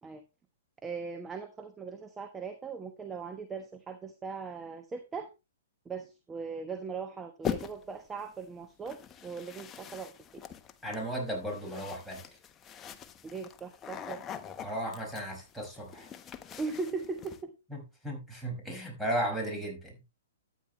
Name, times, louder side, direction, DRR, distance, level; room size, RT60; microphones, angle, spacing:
voice 1, 0.8-5.3 5.8-10.4 13.2-14.2 16.6-17.5, right 4 dB, 15° right, 1.2 m, -39 dB
sound 1, 7.4-8.0 8.9-17.4, left 8 dB, 20° left, 1.1 m, -42 dB
voice 2, 10.8-12.2 14.6-16.1 17.7-20.0, right 1 dB, ahead, 5.5 m, -35 dB
13.0 x 9.4 x 3.1 m
hypercardioid pair, 125°, 0 cm